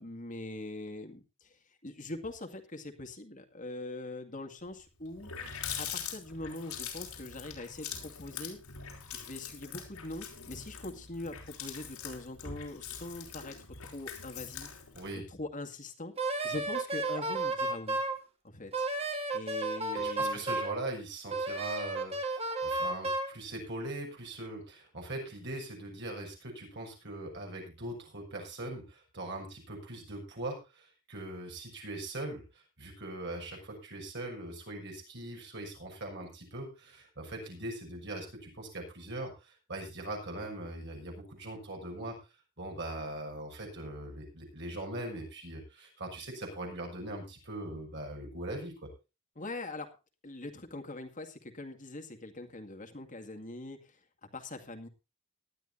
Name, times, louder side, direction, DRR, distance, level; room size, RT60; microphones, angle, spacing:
voice 1, 0.0-5.3 5.8-8.6 9.1-14.8 15.1-16.1 16.4-18.0 18.4-18.9 19.3-20.4 49.4-49.9 50.2-54.9, left 2 dB, 35° left, 4 dB, 2.1 m, -42 dB
Water tap faucet, 4.7-4.8 5.0-15.1, left 7 dB, 90° left, 4.5 m, -43 dB
voice 2, 14.9-15.3 19.9-42.2 42.6-48.9, right 1 dB, 55° right, 1 dB, 6.6 m, -41 dB
Wind instrument woodwind instrument, 16.2-18.2 18.7-20.8 21.3-23.3, right 2 dB, 30° right, 2.3 m, -32 dB
19.0 x 12.5 x 2.7 m, 0.29 s
head